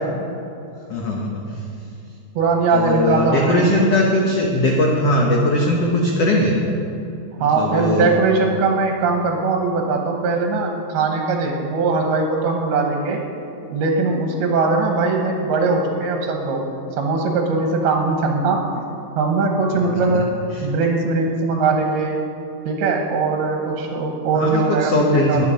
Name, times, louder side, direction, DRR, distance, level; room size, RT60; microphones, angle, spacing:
voice 1, 0.9-1.6 2.7-6.6 7.4-8.1 19.7-20.2 20.5-20.6 24.3-25.5, left 1 dB, 85° left, -1 dB, 1.4 m, -20 dB
voice 2, 2.4-3.9 7.4-13.2 13.7-16.7 17.0-18.8 19.2-20.3 20.6-22.2 22.7-25.5, right 4 dB, 80° right, 2 dB, 3.0 m, -20 dB
21.5 x 7.2 x 5.0 m, 2.8 s
omnidirectional pair, 4.5 m